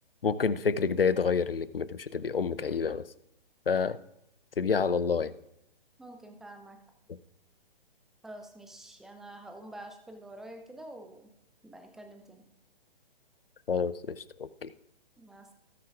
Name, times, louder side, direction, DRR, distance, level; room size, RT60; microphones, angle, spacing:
voice 1, 0.2-3.1 3.7-4.0 4.6-5.3 13.7-14.7, left 5 dB, 75° left, 16 dB, 0.7 m, -28 dB
voice 2, 6.0-6.8 8.2-11.3 11.6-12.4 15.2-15.5, right 1 dB, ahead, 5 dB, 0.6 m, -47 dB
18.5 x 9.4 x 2.5 m, 0.79 s
figure-of-eight pair, 130°, 29 cm